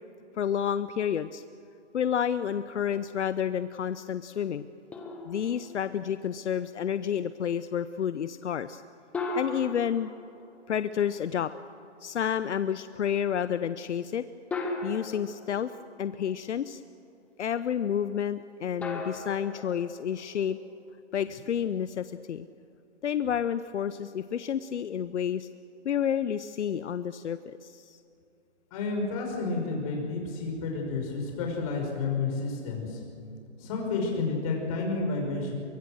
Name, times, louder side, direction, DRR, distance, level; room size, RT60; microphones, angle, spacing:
voice 1, 0.4-1.4 1.9-4.7 5.3-8.8 9.4-10.1 10.7-11.5 12.0-14.2 14.8-15.7 16.0-16.8 17.4-20.6 21.1-22.5 23.0-25.5 25.8-28.0, left 8 dB, 75° left, 13 dB, 0.8 m, -30 dB
sound 1, 4.9-6.4 9.1-11.2 12.8-12.9 14.5-16.4 18.8-20.8, left 2 dB, 5° left, 0.8 m, -38 dB
voice 2, 28.7-33.0 33.6-35.5, left 3 dB, 30° left, 1 dB, 5.6 m, -30 dB
23.5 x 23.5 x 6.4 m, 2.7 s
hypercardioid pair, 160°, 36 cm